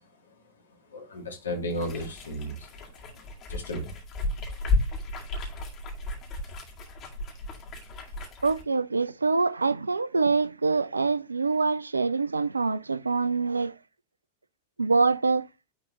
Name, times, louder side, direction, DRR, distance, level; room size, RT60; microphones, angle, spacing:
voice 1, 0.9-2.5 3.5-3.9, equal, 70° left, 1.9 m, -33 dB
sound 1, 1.7-8.6, left 2 dB, 30° left, 2.0 m, -33 dB
voice 2, 8.4-13.7 14.8-15.5, right 4 dB, 80° right, 0.3 m, -25 dB
9.7 x 3.7 x 3.0 m
figure-of-eight pair, 90°, 0 cm